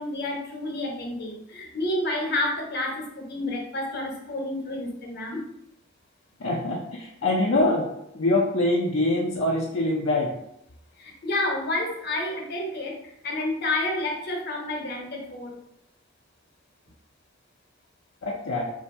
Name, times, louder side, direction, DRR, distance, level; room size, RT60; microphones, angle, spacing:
voice 1, 0.0-5.4 11.0-15.5, left 2 dB, 50° left, 0 dB, 1.0 m, -30 dB
voice 2, 6.4-7.9 8.1-10.3 18.2-18.7, left 2 dB, 70° left, -3 dB, 0.6 m, -24 dB
3.4 x 2.7 x 4.2 m, 0.79 s
head